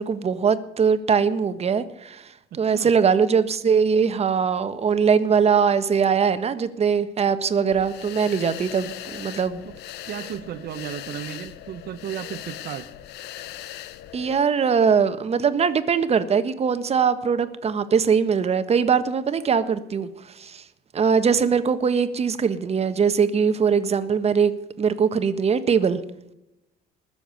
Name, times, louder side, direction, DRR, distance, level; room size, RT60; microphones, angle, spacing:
voice 1, 0.0-2.3 2.6-9.6 14.1-20.1 20.4-20.6 20.9-26.0, right 6 dB, 40° right, 11 dB, 1.4 m, -21 dB
voice 2, 2.5-2.9 9.6-9.7 10.0-12.9, right 10 dB, 65° right, 6 dB, 1.1 m, -34 dB
sound 1, 7.7-14.4, left 13 dB, 80° left, 1.0 m, -39 dB
20.5 x 7.2 x 8.4 m, 0.88 s
cardioid pair, 110°, 17 cm